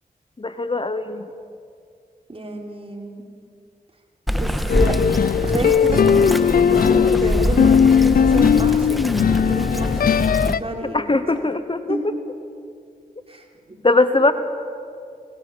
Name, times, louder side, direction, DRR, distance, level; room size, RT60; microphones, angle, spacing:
voice 1, 0.4-1.3 10.9-12.0 13.8-14.3, left 2 dB, 30° left, 11 dB, 1.0 m, -20 dB
voice 2, 2.3-3.1 4.4-4.5 4.8-5.0 5.4-9.0 9.5-10.0 10.4-11.5 11.9-12.1 13.3-13.4 14.1-14.2, right 2 dB, 35° right, 2 dB, 3.9 m, -30 dB
Bird vocalization bird call bird song, 4.3-10.5, equal, ahead, 1.4 m, -25 dB
sound 1, 4.7-10.6, left 7 dB, 65° left, 0.5 m, -17 dB
21.5 x 17.5 x 7.3 m, 2.3 s
cardioid pair, 50°, 16 cm